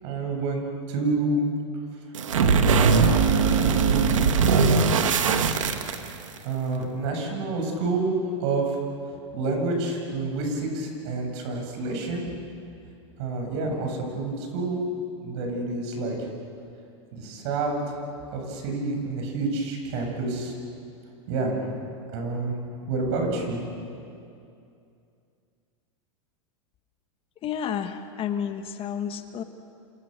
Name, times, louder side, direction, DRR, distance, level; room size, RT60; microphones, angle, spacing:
voice 1, 0.0-0.6 0.9-1.5 2.4-2.9 3.1-4.9 6.4-8.1 8.4-8.8 9.3-12.2 13.2-14.8 15.2-16.3 17.1-17.8 18.3-20.5 21.3-21.6 22.1-22.5 22.9-23.6, right 3 dB, 60° right, 2 dB, 8.0 m, -28 dB
sound 1, 2.2-6.4, right 5 dB, 90° right, 1.9 m, -20 dB
voice 2, 27.4-29.4, left 8 dB, 35° left, 7 dB, 1.8 m, -31 dB
29.5 x 27.5 x 6.8 m, 2.6 s
hypercardioid pair, 115°, 16 cm